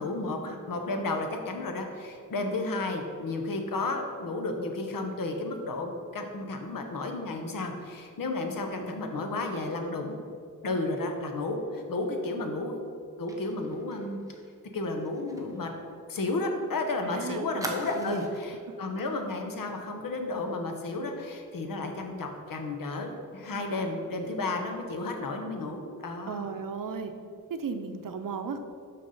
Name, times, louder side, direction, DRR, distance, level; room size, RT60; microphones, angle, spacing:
voice 1, 0.0-10.2 10.6-12.8 13.2-14.2 14.7-15.7 16.1-26.5, left 2 dB, 85° left, 4 dB, 1.0 m, -32 dB
Fire, 13.3-16.7 17.0-17.1 17.6-18.6 19.0-19.1 19.5-19.7, right 2 dB, 10° right, 1.0 m, -42 dB
voice 2, 17.0-17.5 17.9-18.3 26.3-27.1 27.5-28.6, right 5 dB, 75° right, 8 dB, 0.7 m, -35 dB
6.6 x 5.9 x 5.4 m, 2.3 s
wide cardioid pair, 140°, 33 cm